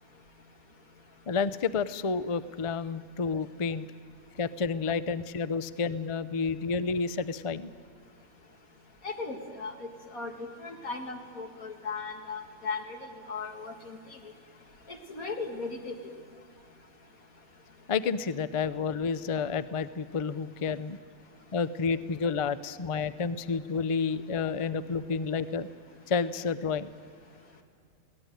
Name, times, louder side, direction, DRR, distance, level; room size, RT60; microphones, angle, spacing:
voice 1, 1.3-3.9 4.4-7.7 17.9-21.0 21.5-25.7 26.1-26.9, left 5 dB, 40° left, 13 dB, 0.4 m, -30 dB
voice 2, 9.0-9.9 10.1-10.3 10.6-13.0 13.3-14.0 14.9-16.1, left 4 dB, 75° left, 2 dB, 2.3 m, -37 dB
22.0 x 17.5 x 9.2 m, 2.2 s
omnidirectional pair, 1.5 m